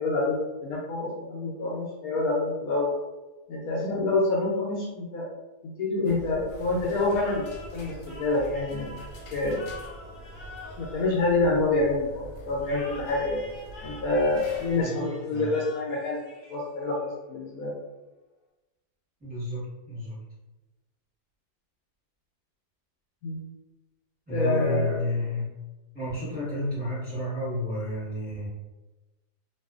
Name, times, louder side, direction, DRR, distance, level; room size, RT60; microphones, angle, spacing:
voice 1, 0.0-2.9 3.5-5.3 5.6-7.5 7.7-8.9 9.3-9.6 10.8-13.4 13.8-16.2 16.5-17.7 23.2-23.4 24.3-24.9, left 2 dB, 70° left, -3 dB, 1.0 m, -27 dB
sound 1, 6.0-14.8, right 1 dB, 85° left, 1.3 m, -44 dB
sound 2, 7.0-11.9 12.6-17.0, left 2 dB, 50° left, 0.6 m, -46 dB
voice 2, 14.7-15.5 19.2-20.2 24.3-25.5 25.9-28.5, left 1 dB, 5° right, -10 dB, 0.9 m, -31 dB
2.6 x 2.3 x 2.3 m, 1.1 s
omnidirectional pair, 1.7 m